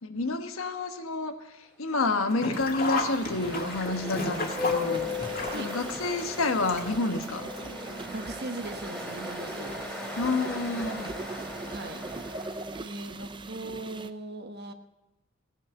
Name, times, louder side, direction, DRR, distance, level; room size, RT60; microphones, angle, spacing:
voice 1, 0.0-5.1 5.5-7.5 10.2-11.1, left 3 dB, 80° left, 6 dB, 1.3 m, -29 dB
Ocean, 2.0-13.1, left 3 dB, 5° left, 3.2 m, -37 dB
Sink (filling or washing), 2.3-7.2 7.6-7.7 8.7-8.8 9.1-9.2, left 3 dB, 45° left, 2.0 m, -33 dB
sound 1, 2.5-14.1, right 3 dB, 25° right, 0.5 m, -41 dB
voice 2, 8.1-9.8 11.7-12.0 12.8-14.7, right 2 dB, 50° right, 7 dB, 1.2 m, -39 dB
17.0 x 9.4 x 6.5 m, 1.0 s
head